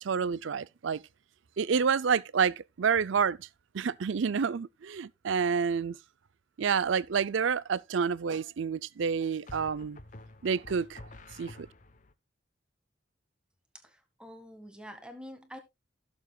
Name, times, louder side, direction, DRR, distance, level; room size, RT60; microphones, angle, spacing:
voice 1, 0.0-1.0 1.6-3.5 3.7-6.0 6.6-10.0 10.4-11.0 11.3-11.7, right 6 dB, 75° right, 0.5 m, -29 dB
sound 1, 6.9-7.3 9.5-12.1, left 2 dB, 40° left, 0.9 m, -49 dB
voice 2, 13.7-15.6, equal, 5° right, 1.7 m, -47 dB
16.5 x 7.1 x 2.3 m
head